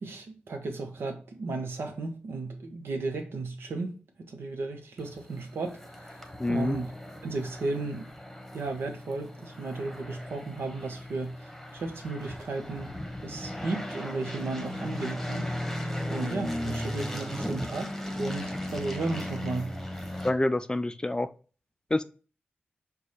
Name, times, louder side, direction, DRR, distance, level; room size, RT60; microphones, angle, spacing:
voice 1, 0.0-7.0 7.2-8.1 8.5-17.9 18.2-19.8, right 3 dB, 85° right, 0.8 m, -35 dB
sound 1, 5.0-20.3, left 1 dB, 5° left, 1.0 m, -37 dB
voice 2, 6.4-6.8 20.2-21.3 21.9-22.0, left 2 dB, 20° left, 0.3 m, -27 dB
4.7 x 2.3 x 4.0 m
cardioid pair, 45°, 4 cm